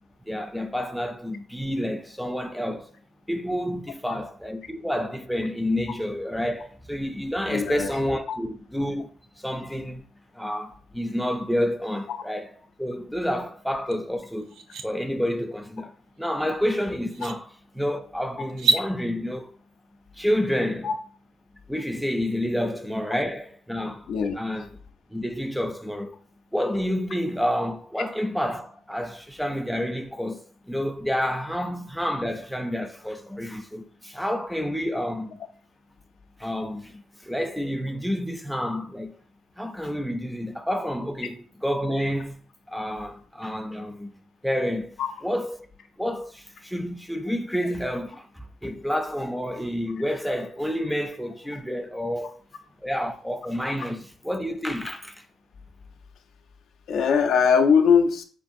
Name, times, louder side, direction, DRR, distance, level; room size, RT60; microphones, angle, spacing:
voice 1, 0.2-2.9 3.3-9.1 9.4-19.6 20.1-20.9 21.7-24.7 25.1-26.2 26.5-35.4 36.4-39.2 39.6-42.4 42.7-44.1 44.4-45.7 46.0-52.4 52.8-55.3, equal, ahead, 0.4 m, -29 dB
voice 2, 7.5-7.9 20.8-20.9 24.1-24.4 45.0-45.1 56.9-58.2, left 6 dB, 75° left, 0.4 m, -20 dB
sound 1, 13.9-14.0 14.4-14.9 16.5-16.6 17.1-17.4 18.5-18.9, right 4 dB, 75° right, 0.3 m, -25 dB
3.7 x 2.4 x 2.6 m
cardioid pair, 90°, 0 cm